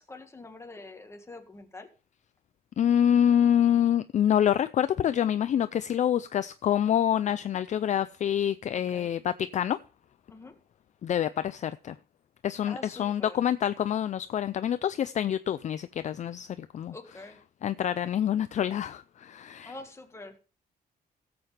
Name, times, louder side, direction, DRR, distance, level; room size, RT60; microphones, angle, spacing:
voice 1, 0.0-1.9 8.7-9.1 10.3-10.6 12.6-13.5 16.9-17.4 19.6-20.4, left 2 dB, 15° left, 1.6 m, -45 dB
voice 2, 2.8-9.8 11.0-12.0 12.4-16.9 17.6-19.7, left 10 dB, 45° left, 0.4 m, -26 dB
16.5 x 7.8 x 3.3 m
cardioid pair, 135°, 17 cm